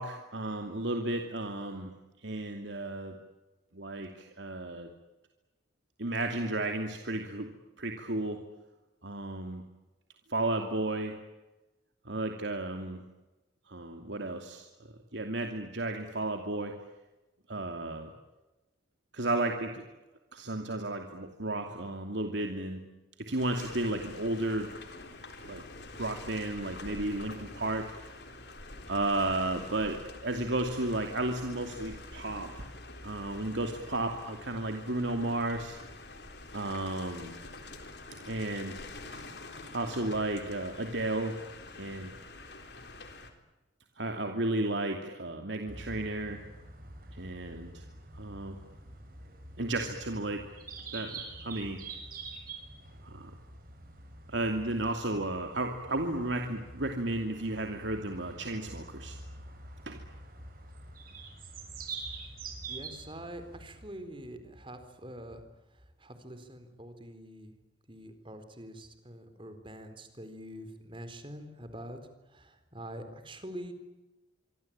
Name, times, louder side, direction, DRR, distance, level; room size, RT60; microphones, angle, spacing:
voice 1, 0.0-1.9 2.2-3.2 3.7-4.9 6.0-7.5 7.8-8.4 9.0-9.6 10.3-11.1 12.0-13.0 13.7-14.6 15.1-16.7 17.5-18.1 19.1-19.8 20.3-22.8 23.2-24.7 25.4-25.6 26.0-27.9 28.9-32.6 33.0-35.8 36.5-37.3 38.3-38.8 39.1-39.2 39.7-41.4 41.7-42.1 44.0-46.4 47.1-47.8 48.1-48.6 49.6-50.5 50.9-51.8 53.0-53.3 54.3-59.2 59.9-60.0, right 2 dB, 80° right, 4 dB, 2.7 m, -33 dB
sound 1, 23.4-43.3, left 2 dB, 60° left, 3.9 m, -46 dB
sound 2, 45.7-64.1, right 3 dB, 50° right, 7.3 m, -46 dB
voice 2, 62.7-65.4 66.0-67.5 67.9-72.0 72.3-73.7, right 1 dB, 30° right, 9 dB, 4.1 m, -45 dB
26.0 x 24.5 x 8.9 m, 1.1 s
head